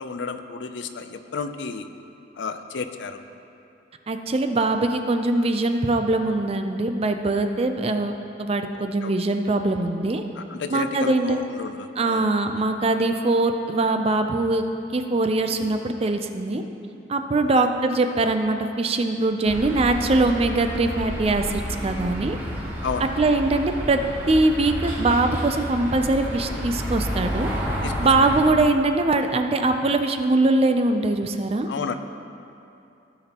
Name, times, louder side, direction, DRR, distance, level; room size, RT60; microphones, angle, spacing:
voice 1, 0.0-1.9 2.4-3.2 8.7-9.1 10.3-12.3 17.6-17.7 22.8-23.1 27.8-28.0 31.7-31.9, left 4 dB, 70° left, 9 dB, 0.4 m, -32 dB
voice 2, 4.1-10.2 10.7-11.4 12.0-14.6 14.9-16.6 17.1-22.4 23.2-24.0 24.3-27.5 28.0-31.7, right 2 dB, 30° right, 6 dB, 0.4 m, -22 dB
sound 1, 19.5-28.5, equal, 10° right, 1.5 m, -30 dB
16.0 x 5.9 x 2.9 m, 2.7 s
head